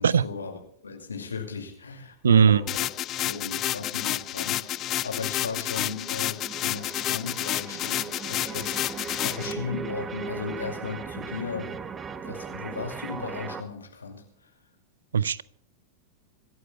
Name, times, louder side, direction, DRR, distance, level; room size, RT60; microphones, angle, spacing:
voice 1, 0.0-2.8 3.2-11.9 12.2-14.5, left 5 dB, 75° left, 2.4 m, -36 dB
voice 2, 2.2-2.6 15.1-15.4, right 7 dB, 70° right, 0.4 m, -18 dB
sound 1, 2.7-9.5, left 13 dB, 35° left, 0.4 m, -30 dB
sound 2, 2.7-13.6, right 5 dB, 20° right, 1.1 m, -39 dB
25.5 x 14.5 x 2.3 m
figure-of-eight pair, 90°, 0 cm